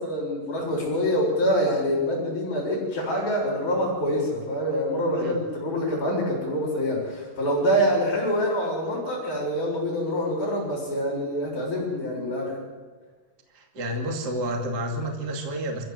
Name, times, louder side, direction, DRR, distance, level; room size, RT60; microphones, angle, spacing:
voice 1, 0.0-12.6, equal, 35° left, -9 dB, 6.6 m, -25 dB
voice 2, 13.5-15.8, right 1 dB, 30° right, 2 dB, 2.5 m, -30 dB
27.0 x 15.0 x 7.8 m, 1.5 s
omnidirectional pair, 4.5 m